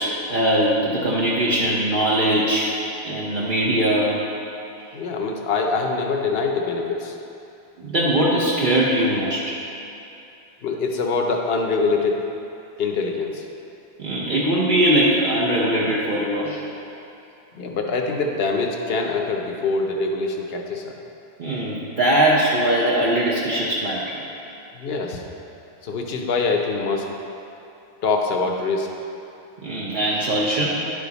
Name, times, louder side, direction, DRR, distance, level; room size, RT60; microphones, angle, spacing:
voice 1, 0.0-2.7 3.0-4.2 7.8-9.6 14.0-16.6 21.4-24.2 29.6-30.7, right 1 dB, 55° right, -5 dB, 0.9 m, -21 dB
voice 2, 4.9-7.2 10.6-12.3 12.8-13.4 17.5-21.0 24.7-25.2 25.8-27.1 28.0-28.9, left 4 dB, 75° left, 2 dB, 1.0 m, -24 dB
10.5 x 4.9 x 4.0 m, 2.8 s
omnidirectional pair, 1.1 m